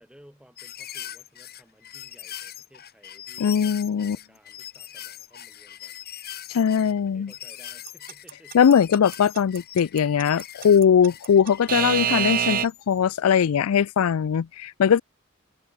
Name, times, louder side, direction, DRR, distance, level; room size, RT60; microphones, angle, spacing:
voice 1, 0.0-6.0 6.7-8.6, equal, 5° right, 7.3 m, -56 dB
sound 1, 0.6-13.0 13.7-13.8, left 11 dB, 45° left, 1.7 m, -41 dB
voice 2, 3.4-4.2 6.5-7.3 8.5-15.0, left 7 dB, 80° left, 0.4 m, -20 dB
Alarm / Clock, 7.9-12.6, right 9 dB, 40° right, 0.6 m, -25 dB
head